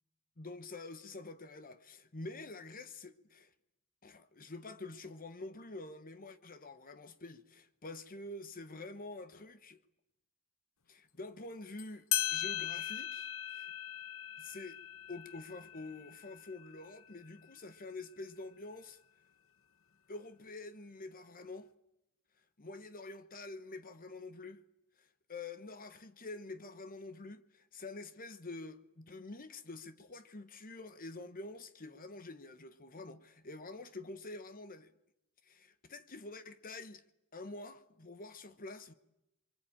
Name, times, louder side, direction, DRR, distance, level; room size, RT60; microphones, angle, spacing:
voice 1, 0.4-3.5 4.0-9.8 10.9-13.7 14.4-14.8 15.1-19.0 20.1-21.7 22.6-24.6 25.0-34.9 35.4-37.0 37.3-38.9, left 2 dB, 40° left, 1.2 m, -47 dB
sound 1, 11.8-11.9 12.1-17.2, left 12 dB, 65° left, 1.2 m, -39 dB
29.0 x 23.5 x 8.9 m
head